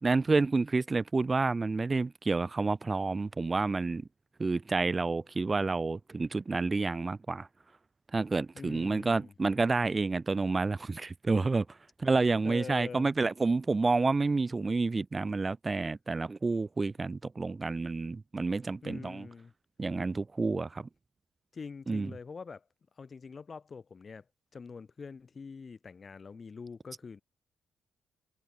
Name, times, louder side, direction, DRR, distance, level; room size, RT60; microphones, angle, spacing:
voice 1, 0.0-4.0 4.4-7.5 8.1-19.2 19.8-20.9 21.9-22.1, right 3 dB, 25° right, 3.2 m, -29 dB
voice 2, 8.5-9.3 12.4-13.1 18.8-19.5 21.5-22.6 23.0-24.2 24.5-27.2, left 5 dB, 35° left, 6.5 m, -44 dB
cardioid pair, 90°, 0 cm